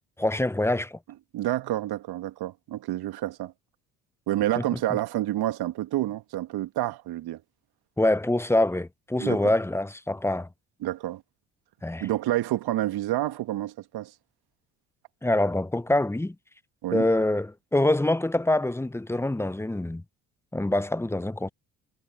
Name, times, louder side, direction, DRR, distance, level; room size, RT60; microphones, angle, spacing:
voice 1, 0.2-1.0 8.0-10.5 11.8-12.1 15.2-16.3 16.9-20.0 20.5-21.5, left 1 dB, 5° left, 0.9 m, -25 dB
voice 2, 1.3-3.5 4.3-7.4 9.2-9.5 10.8-11.2 12.0-14.1 16.8-17.1, right 14 dB, 55° right, 2.1 m, -29 dB
figure-of-eight pair, 55°, 46 cm